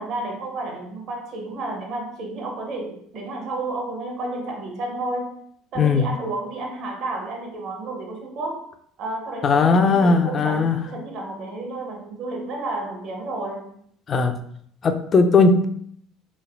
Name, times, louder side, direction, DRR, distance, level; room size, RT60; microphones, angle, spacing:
voice 1, 0.0-5.4 5.7-8.7 9.0-13.7, right 2 dB, 55° right, 1 dB, 0.8 m, -31 dB
voice 2, 5.8-6.1 9.4-10.8 14.1-14.3 14.8-15.7, left 4 dB, 40° left, 8 dB, 0.4 m, -18 dB
3.1 x 2.7 x 2.5 m, 0.66 s
hypercardioid pair, 70°, 0 cm